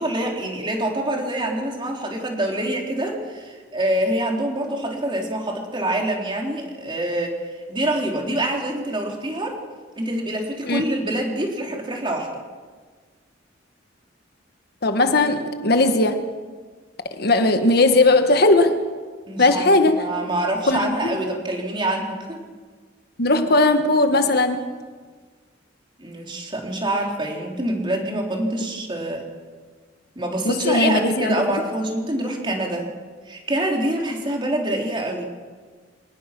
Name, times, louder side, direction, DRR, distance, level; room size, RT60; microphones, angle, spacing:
voice 1, 0.0-9.6 10.0-12.3 19.3-22.4 26.0-29.2 30.1-32.9 33.3-35.2, right 1 dB, 25° right, 0 dB, 3.9 m, -26 dB
voice 2, 14.8-16.2 17.2-18.8 19.4-20.1 20.7-21.0 23.2-24.7 30.4-31.4, left 2 dB, 60° left, 7 dB, 1.5 m, -18 dB
25.5 x 19.5 x 6.1 m, 1.5 s
head